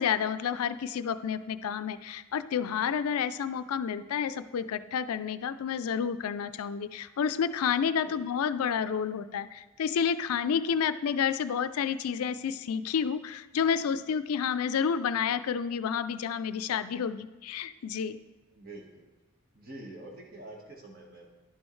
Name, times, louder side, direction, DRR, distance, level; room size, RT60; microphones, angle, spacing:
voice 1, 0.0-18.2, left 7 dB, 85° left, 13 dB, 0.4 m, -30 dB
voice 2, 18.5-19.1 19.5-21.4, right 2 dB, 40° right, 0 dB, 1.4 m, -46 dB
11.0 x 6.2 x 3.2 m, 1.1 s
head